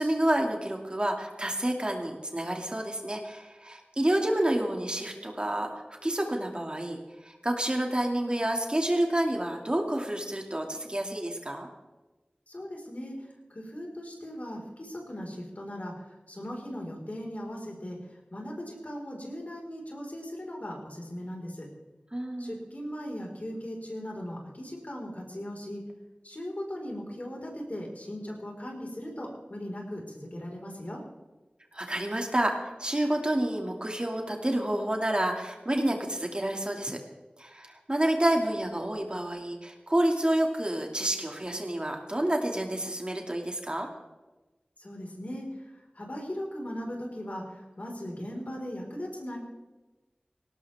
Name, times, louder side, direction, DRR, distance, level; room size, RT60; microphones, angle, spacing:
voice 1, 0.0-7.0 7.2-11.7 22.1-22.6 31.7-37.0 37.4-43.9, right 1 dB, 30° right, 2 dB, 2.4 m, -29 dB
voice 2, 12.5-13.2 13.5-15.9 16.3-18.0 18.3-21.7 22.4-25.8 26.2-31.0 44.8-45.4 45.9-49.4, equal, 55° left, -1 dB, 4.8 m, -38 dB
19.0 x 18.0 x 3.6 m, 1.1 s
wide cardioid pair, 45°, 3 cm